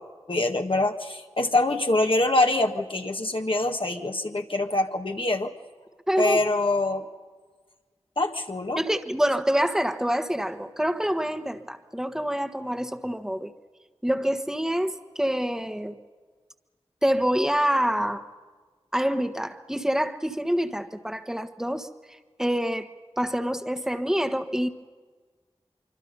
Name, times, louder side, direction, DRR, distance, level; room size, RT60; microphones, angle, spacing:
voice 1, 0.3-5.5 6.2-7.1 8.2-8.8, left 2 dB, 55° left, 4 dB, 1.7 m, -24 dB
voice 2, 6.1-6.5 8.8-13.5 14.0-16.0 17.0-18.3 18.9-22.9 23.2-24.7, equal, 5° right, 8 dB, 1.4 m, -26 dB
25.0 x 25.0 x 5.5 m, 1.4 s
wide cardioid pair, 45°, 11 cm